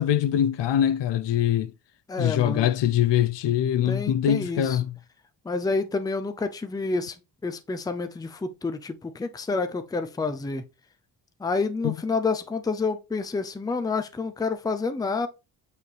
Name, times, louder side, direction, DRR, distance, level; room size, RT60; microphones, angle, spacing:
voice 1, 0.0-1.7 2.2-4.9 11.8-11.9, left 10 dB, 65° left, 0.6 m, -23 dB
voice 2, 2.1-2.7 3.9-4.8 5.4-7.2 7.4-10.6 11.4-15.3, left 4 dB, 10° left, 0.5 m, -28 dB
8.4 x 4.6 x 3.3 m
wide cardioid pair, 165°, 45 cm